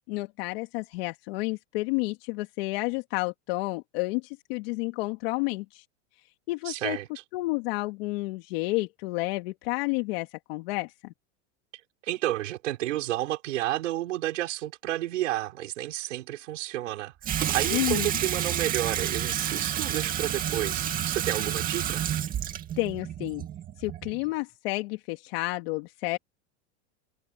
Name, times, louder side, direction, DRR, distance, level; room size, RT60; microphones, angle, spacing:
voice 1, 0.1-5.8 6.5-7.0 7.3-11.1 17.7-18.1 22.8-23.5 23.8-26.2, left 23 dB, 50° left, 2.3 m, -30 dB
voice 2, 6.6-7.1 12.0-22.0, right 15 dB, 80° right, 6.4 m, -31 dB
Water tap faucet / Sink (filling or washing), 17.2-24.3, right 10 dB, 25° right, 2.2 m, -30 dB
supercardioid pair, 160°, 37 cm